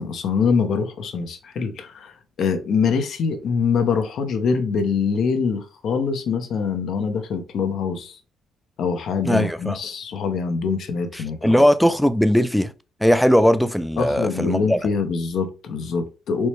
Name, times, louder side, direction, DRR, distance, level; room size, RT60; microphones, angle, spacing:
voice 1, 0.0-8.2 8.8-11.6 14.0-16.5, left 5 dB, 70° left, 0.7 m, -24 dB
voice 2, 9.2-9.8 11.4-12.7 13.0-14.8, equal, ahead, 0.3 m, -18 dB
4.3 x 2.1 x 3.1 m
cardioid pair, 90°, 0 cm